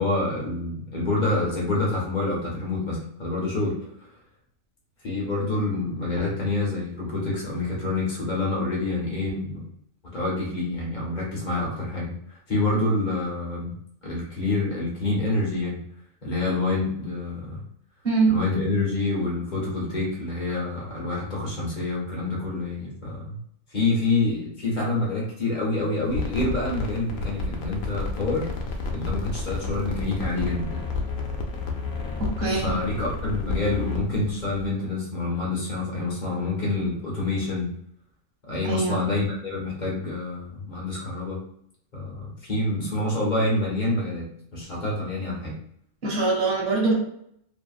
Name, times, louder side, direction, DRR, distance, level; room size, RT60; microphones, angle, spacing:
voice 1, 0.0-3.8 5.0-9.6 10.1-13.7 14.0-15.8 16.2-17.6 18.3-23.4 23.7-28.5 28.9-30.8 32.6-37.7 38.4-41.4 41.9-45.6, left 2 dB, 45° left, -4 dB, 0.8 m, -27 dB
sound 1, 26.1-34.7, left 3 dB, 85° left, 1.0 m, -31 dB
voice 2, 32.2-32.7 38.7-39.0 46.0-46.9, right 3 dB, 50° right, -6 dB, 1.3 m, -23 dB
2.6 x 2.6 x 2.3 m, 0.71 s
omnidirectional pair, 1.3 m